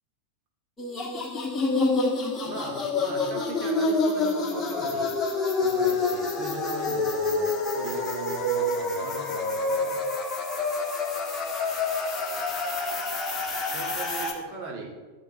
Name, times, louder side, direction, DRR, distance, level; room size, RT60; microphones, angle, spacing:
sound 1, 0.8-14.3, left 3 dB, 15° left, 1.6 m, -27 dB
voice 1, 2.4-5.1 5.6-10.0 13.7-14.9, right 3 dB, 35° right, -1 dB, 2.4 m, -39 dB
13.5 x 8.2 x 2.9 m, 1.3 s
figure-of-eight pair, 90°, 0 cm